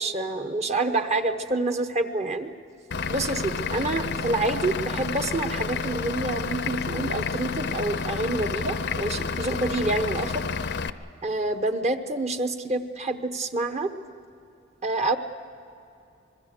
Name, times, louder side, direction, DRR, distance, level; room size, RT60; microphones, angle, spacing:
voice 1, 0.0-2.5 3.1-10.4 11.2-13.9 14.8-15.2, right 2 dB, 35° right, 8 dB, 1.0 m, -27 dB
Vehicle / Engine, 2.9-10.9, left 5 dB, 60° left, 0.7 m, -30 dB
25.5 x 21.5 x 6.7 m, 2.6 s
head